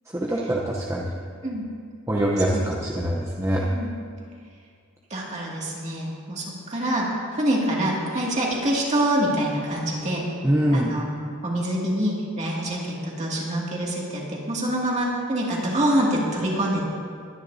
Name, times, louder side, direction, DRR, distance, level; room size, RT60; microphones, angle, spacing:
voice 1, 0.1-1.1 2.1-3.6 10.4-10.9, equal, 15° right, -3 dB, 0.8 m, -24 dB
voice 2, 5.1-7.1 7.3-10.3 10.7-11.1 11.4-16.8, right 1 dB, 35° right, -3 dB, 2.3 m, -25 dB
21.0 x 9.8 x 2.7 m, 2.2 s
head